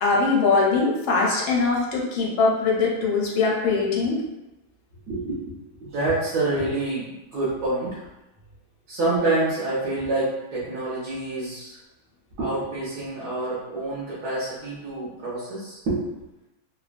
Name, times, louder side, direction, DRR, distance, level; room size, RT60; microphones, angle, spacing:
voice 1, 0.0-4.2, left 4 dB, 80° left, -3 dB, 1.4 m, -21 dB
voice 2, 5.1-8.0 8.9-11.8 12.4-16.0, right 2 dB, 65° right, -9 dB, 1.1 m, -27 dB
3.3 x 2.1 x 2.4 m, 0.99 s
omnidirectional pair, 2.2 m